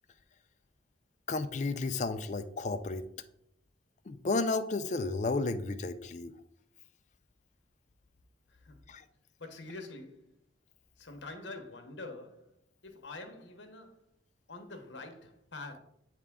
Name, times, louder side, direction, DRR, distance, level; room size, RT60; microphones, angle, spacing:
voice 1, 1.3-3.0 4.1-6.3 8.9-9.0, left 3 dB, 40° left, 0.4 m, -32 dB
voice 2, 9.4-10.3 11.0-12.5 12.8-14.0 14.5-15.8, left 2 dB, 75° left, 1.0 m, -45 dB
8.4 x 3.6 x 3.6 m
head